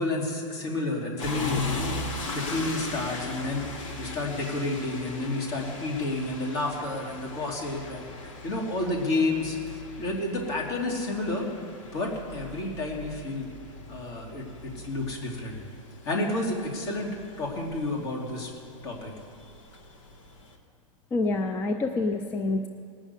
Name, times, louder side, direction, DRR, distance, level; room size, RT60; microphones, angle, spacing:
voice 1, 0.0-3.7 4.0-11.5 11.9-13.5 13.9-15.6 16.0-18.5 18.8-19.1, left 2 dB, 50° left, 0 dB, 3.0 m, -30 dB
sound 1, 1.2-20.6, left 3 dB, 70° left, 1.9 m, -39 dB
voice 2, 21.1-22.7, left 3 dB, 10° left, 6 dB, 0.4 m, -27 dB
18.5 x 6.3 x 8.3 m, 2.4 s
supercardioid pair, 160°, 17 cm